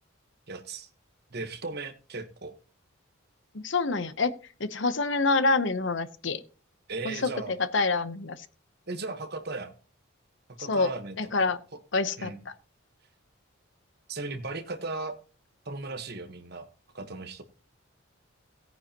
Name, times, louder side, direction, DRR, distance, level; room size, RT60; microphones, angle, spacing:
voice 1, 0.5-0.9 1.3-2.6 6.9-7.5 8.9-9.7 10.5-11.5 12.2-12.4 14.1-15.2 15.6-16.7 16.9-17.4, right 3 dB, 50° right, 8 dB, 1.3 m, -37 dB
voice 2, 3.5-4.3 4.6-6.4 7.0-7.3 7.7-8.5 10.6-10.9 11.2-11.6 11.9-12.5, left 3 dB, 60° left, 13 dB, 0.8 m, -26 dB
16.5 x 9.5 x 2.9 m, 0.36 s
head